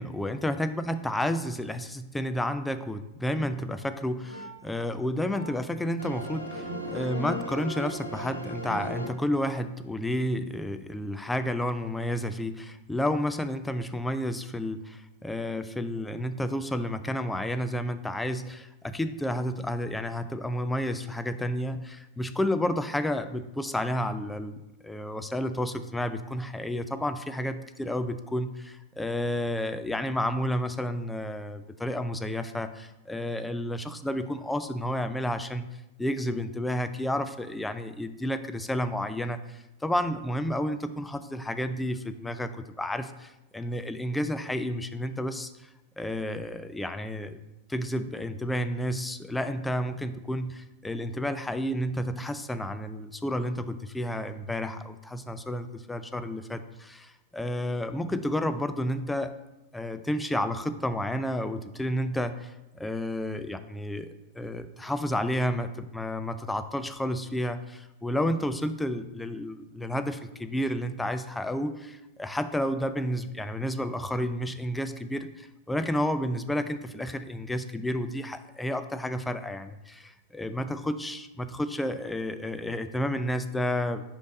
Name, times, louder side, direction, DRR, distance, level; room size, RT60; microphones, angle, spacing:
voice 1, 0.0-35.6 36.0-42.5 42.8-45.5 46.0-47.4 47.7-59.3 59.7-62.5 62.8-84.0, left 1 dB, 5° left, 9 dB, 0.4 m, -31 dB
sound 1, 3.4-3.6 4.0-4.5 5.2-5.5 6.0-9.1, left 1 dB, 90° right, 0.9 m, -36 dB
5.2 x 5.1 x 4.0 m, 0.96 s
figure-of-eight pair, 90°, 0 cm